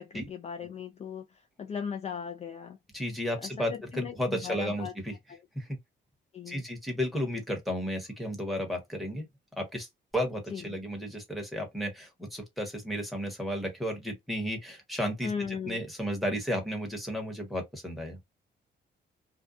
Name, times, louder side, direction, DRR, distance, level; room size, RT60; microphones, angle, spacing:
voice 1, 0.0-2.8 3.4-4.9 6.3-6.6 10.5-10.8 15.2-15.8, left 7 dB, 35° left, 0.4 m, -38 dB
voice 2, 2.9-5.1 5.5-5.8 6.5-9.3 9.6-18.3, equal, ahead, 1.1 m, -33 dB
2.6 x 2.2 x 2.3 m
cardioid pair, 130°, 20 cm